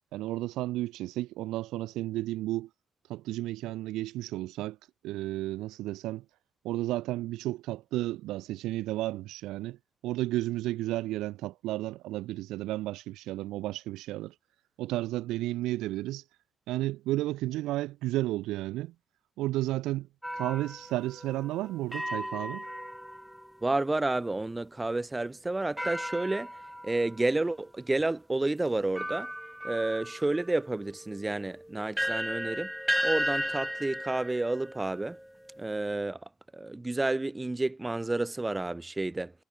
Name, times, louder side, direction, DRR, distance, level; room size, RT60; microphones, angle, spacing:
voice 1, 0.1-2.7 3.1-4.8 5.0-6.2 6.6-9.8 10.0-14.3 14.8-16.2 16.7-18.9 19.4-20.1 20.3-22.6, right 16 dB, 75° right, 0.5 m, -32 dB
sound 1, 20.2-23.7 25.8-27.3 28.0-28.1 29.0-35.8, equal, 5° right, 0.4 m, -36 dB
voice 2, 23.6-26.5 26.8-29.3 29.6-32.7 33.0-35.2 35.6-36.2 36.5-39.3, right 2 dB, 20° right, 1.3 m, -30 dB
hypercardioid pair, 50°, 0 cm